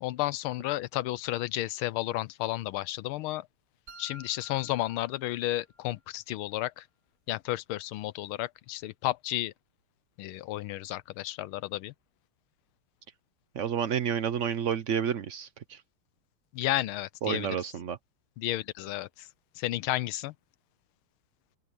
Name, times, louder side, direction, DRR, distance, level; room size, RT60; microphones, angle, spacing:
voice 1, 0.0-3.5 4.0-6.9 7.3-9.5 10.2-11.9 16.5-17.6 18.4-19.3 19.6-20.3, left 16 dB, 80° left, 1.4 m, -32 dB
sound 1, 3.9-5.9, right 1 dB, 50° right, 3.9 m, -52 dB
voice 2, 13.5-15.8 17.2-18.0, right 8 dB, 75° right, 0.6 m, -30 dB
open air
omnidirectional pair, 2.3 m